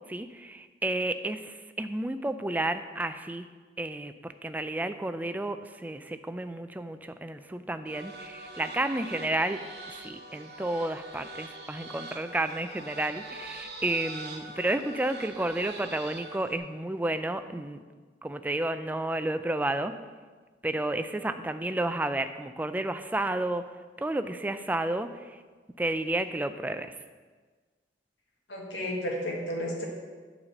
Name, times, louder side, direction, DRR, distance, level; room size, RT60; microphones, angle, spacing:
voice 1, 0.1-3.5 3.8-9.6 9.9-17.8 18.2-19.9 20.6-23.6 24.0-25.4 25.8-26.9, right 1 dB, 10° right, 9 dB, 0.3 m, -31 dB
sound 1, 7.9-16.6, right 2 dB, 65° right, 1.1 m, -44 dB
voice 2, 28.5-29.9, equal, 85° left, -1 dB, 1.7 m, -32 dB
8.7 x 4.2 x 6.5 m, 1.4 s
head